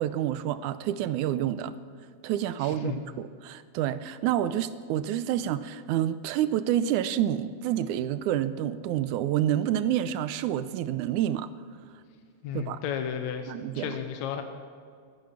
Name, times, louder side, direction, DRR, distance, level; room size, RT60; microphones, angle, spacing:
voice 1, 0.0-1.8 2.2-11.5 12.5-12.8 13.5-14.0, right 11 dB, 85° right, 13 dB, 2.1 m, -28 dB
voice 2, 2.6-3.0 12.4-14.4, left 8 dB, 75° left, 6 dB, 2.2 m, -33 dB
16.0 x 13.0 x 5.8 m, 2.2 s
omnidirectional pair, 3.4 m